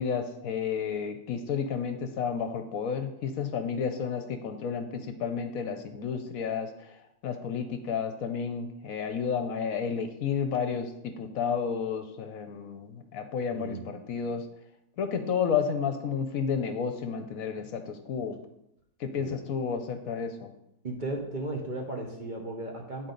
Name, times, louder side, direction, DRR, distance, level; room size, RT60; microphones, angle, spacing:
voice 1, 0.0-6.9 7.2-14.4 15.0-18.4 19.0-20.5, left 6 dB, 70° left, 7 dB, 1.1 m, -31 dB
voice 2, 13.5-13.9 17.6-17.7 19.2-19.4 20.8-23.1, right 2 dB, 40° right, 0 dB, 0.8 m, -36 dB
10.0 x 4.3 x 3.9 m, 0.82 s
omnidirectional pair, 1.7 m